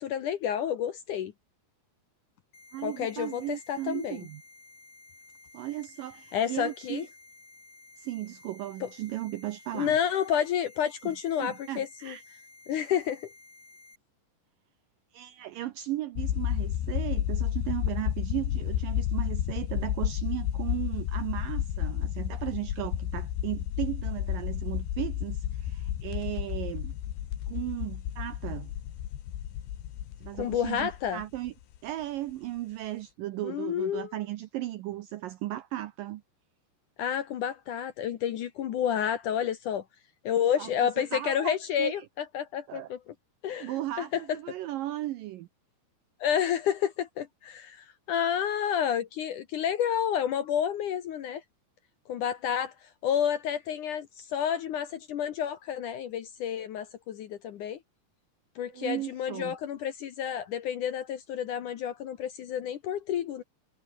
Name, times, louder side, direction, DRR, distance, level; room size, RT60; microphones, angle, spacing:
voice 1, 0.0-1.3 2.8-4.2 6.3-7.1 8.8-8.9 9.7-12.2 12.7-13.3 30.4-31.2 33.4-34.1 37.0-39.8 40.2-43.0 43.4-44.2 46.2-51.4 52.1-57.8 58.6-63.4, left 9 dB, 65° left, 2.2 m, -30 dB
sound 1, 2.5-14.0, left 3 dB, 30° left, 8.1 m, -54 dB
voice 2, 2.7-4.4 5.5-7.1 8.0-10.0 11.0-11.1 11.4-12.2 15.1-26.9 27.5-28.7 30.2-31.5 31.8-36.2 40.6-42.1 42.7-42.9 43.6-45.5 58.7-59.6, right 15 dB, 75° right, 2.0 m, -36 dB
sound 2, 16.2-31.8, left 11 dB, 90° left, 4.2 m, -32 dB
omnidirectional pair, 4.9 m